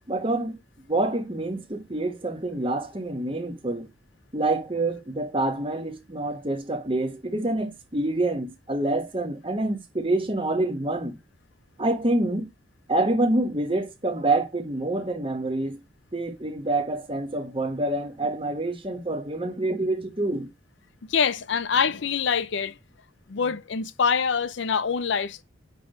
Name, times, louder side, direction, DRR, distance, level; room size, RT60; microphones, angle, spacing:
voice 1, 0.1-0.6 0.9-3.9 4.3-11.2 11.8-12.5 12.9-15.8 16.1-20.5, right 2 dB, 25° right, 1.4 m, -27 dB
voice 2, 21.1-22.7 23.3-25.4, left 6 dB, 65° left, 0.6 m, -25 dB
9.8 x 3.5 x 5.1 m
head